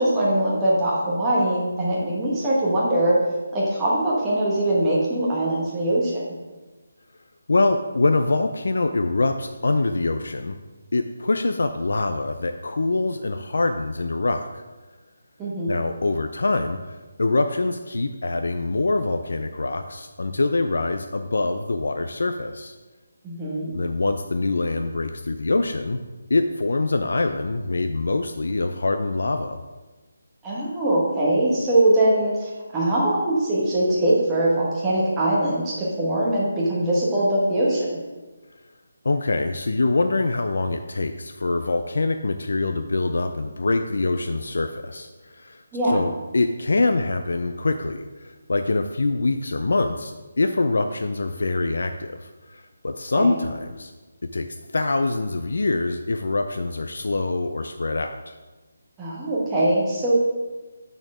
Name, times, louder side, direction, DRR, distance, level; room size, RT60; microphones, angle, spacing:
voice 1, 0.0-3.2 3.5-6.2 15.4-15.7 23.2-23.7 30.4-38.0 45.7-46.0 53.1-53.4 59.0-60.1, right 1 dB, 10° right, -7 dB, 1.1 m, -22 dB
voice 2, 7.5-10.6 10.9-14.6 15.7-22.7 23.7-26.0 26.3-29.6 39.0-45.6 45.9-53.9 54.3-54.5 54.7-58.3, left 3 dB, 65° left, 7 dB, 0.4 m, -24 dB
6.4 x 4.3 x 6.0 m, 1.2 s
hypercardioid pair, 180°, 0 cm